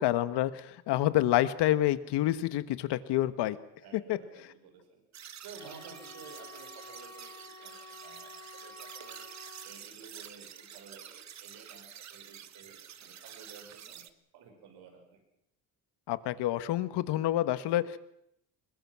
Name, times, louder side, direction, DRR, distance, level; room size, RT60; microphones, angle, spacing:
voice 1, 0.0-3.6 4.1-4.2 16.1-18.0, left 14 dB, 80° left, 12 dB, 1.4 m, -28 dB
voice 2, 3.8-5.0 5.4-9.3 9.6-14.1 14.3-15.2, right 5 dB, 65° right, 4 dB, 6.0 m, -53 dB
sound 1, 5.1-14.1, right 9 dB, 40° right, 1.2 m, -49 dB
sound 2, 5.5-9.7, left 2 dB, 40° left, 4.5 m, -50 dB
26.0 x 21.5 x 6.1 m, 0.77 s
cardioid pair, 150°, 41 cm